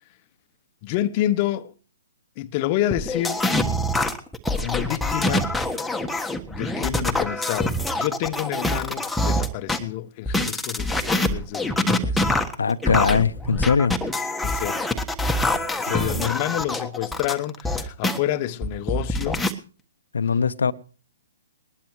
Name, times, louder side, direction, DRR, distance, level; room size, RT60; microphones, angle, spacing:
voice 1, 0.8-1.7 2.4-3.4 4.6-5.5 6.5-12.2 14.4-14.9 15.8-19.4 20.7-20.8, left 13 dB, 35° left, 1.0 m, -28 dB
sound 1, 2.9-9.8 10.3-18.2 18.6-19.5, left 1 dB, 5° left, 1.5 m, -25 dB
voice 2, 12.6-14.0 15.8-16.3 20.1-20.7, left 5 dB, 70° left, 1.0 m, -22 dB
20.5 x 20.0 x 3.2 m
figure-of-eight pair, 125°, 0 cm